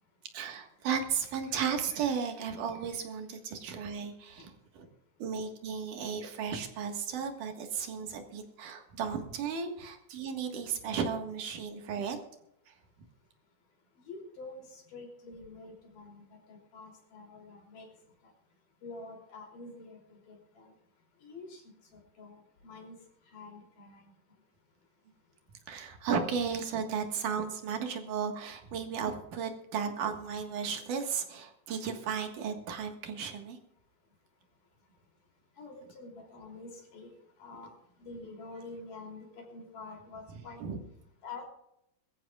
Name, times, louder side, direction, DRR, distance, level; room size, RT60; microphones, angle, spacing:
voice 1, 0.3-4.5 4.8-4.9 5.2-12.2 12.7-13.1 25.7-33.6 40.3-40.8, right 6 dB, 75° right, 5 dB, 3.2 m, -35 dB
voice 2, 14.0-17.9 18.2-18.3 18.8-20.7 21.2-21.6 21.9-23.0 23.3-24.1 35.6-37.1 37.4-37.7 38.0-40.6 41.2-41.5, left 3 dB, 75° left, 1 dB, 4.7 m, -47 dB
22.5 x 14.0 x 2.4 m, 0.80 s
omnidirectional pair, 3.7 m